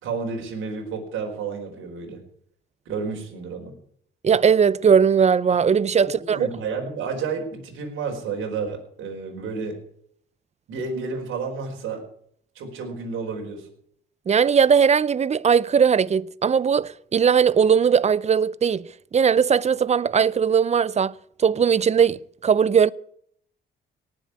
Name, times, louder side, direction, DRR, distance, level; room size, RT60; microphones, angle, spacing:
voice 1, 0.0-2.2 2.8-3.7 6.3-9.8 10.7-12.0 12.5-13.7, right 5 dB, 80° right, 4.7 m, -31 dB
voice 2, 4.2-6.4 14.3-22.9, right 7 dB, 35° right, 0.6 m, -19 dB
18.5 x 7.5 x 9.6 m
cardioid pair, 90°, 20 cm